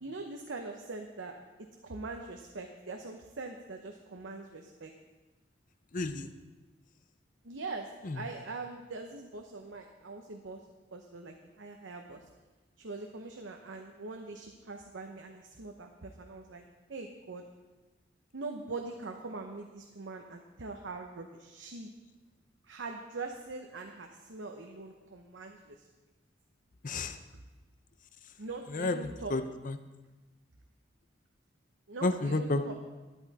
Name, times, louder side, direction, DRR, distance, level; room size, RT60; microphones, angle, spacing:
voice 1, 0.0-1.3 1.8-4.9 7.4-10.6 10.9-12.2 12.8-16.6 16.9-17.4 18.3-21.9 22.6-25.9 28.4-29.3 31.9-32.7, right 3 dB, 85° right, 3 dB, 0.9 m, -42 dB
voice 2, 5.9-6.3 8.0-8.2 26.8-27.2 28.7-29.8 32.0-32.6, left 2 dB, 45° left, 9 dB, 0.7 m, -31 dB
12.0 x 10.5 x 4.1 m, 1.2 s
head